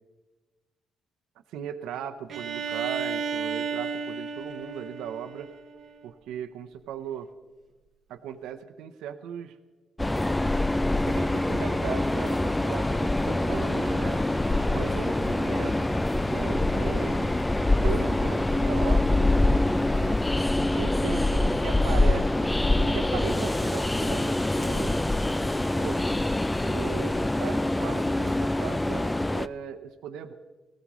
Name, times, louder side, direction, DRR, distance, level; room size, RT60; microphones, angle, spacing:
voice 1, 1.5-5.5 6.0-7.3 8.1-9.6 11.1-14.2 14.5-15.9 16.2-17.4 17.8-20.2 20.7-22.5 22.8-25.0 25.7-26.0 26.6-30.3, right 8 dB, 90° right, 8 dB, 0.7 m, -38 dB
Bowed string instrument, 2.3-6.0, right 5 dB, 60° right, 0.8 m, -33 dB
Train, 10.0-29.5, left 2 dB, 10° left, 0.4 m, -25 dB
sound 1, 13.1-26.4, left 2 dB, 90° left, 3.0 m, -49 dB
19.0 x 15.5 x 3.1 m, 1.2 s
cardioid pair, 90°, 0 cm